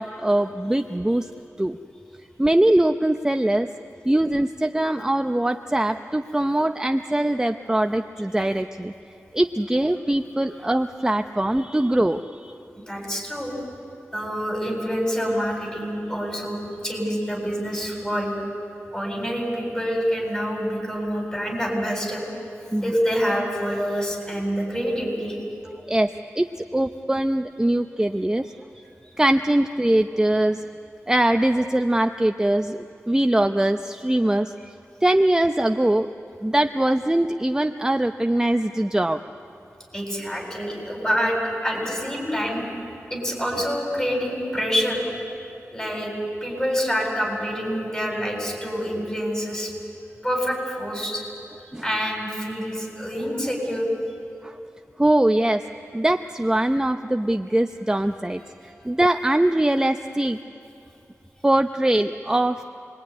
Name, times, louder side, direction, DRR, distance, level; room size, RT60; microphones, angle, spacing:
voice 1, 0.0-1.3 1.6-1.8 2.4-3.7 4.0-8.9 9.3-12.5 22.7-22.8 25.9-28.5 29.2-30.6 31.1-34.7 35.0-36.1 36.4-39.2 51.7-51.8 54.4-54.6 55.0-55.7 55.9-60.4 61.4-62.6, right 1 dB, 15° right, 6 dB, 0.7 m, -22 dB
voice 2, 12.7-13.5 14.1-18.3 18.9-22.2 22.8-25.4 39.9-42.7 43.1-45.0 45.7-46.1 46.4-49.7 50.2-51.2 51.8-53.9 58.6-58.8, equal, 15° left, 0 dB, 7.8 m, -26 dB
28.0 x 21.5 x 9.7 m, 2.6 s
wide cardioid pair, 70°, 5 cm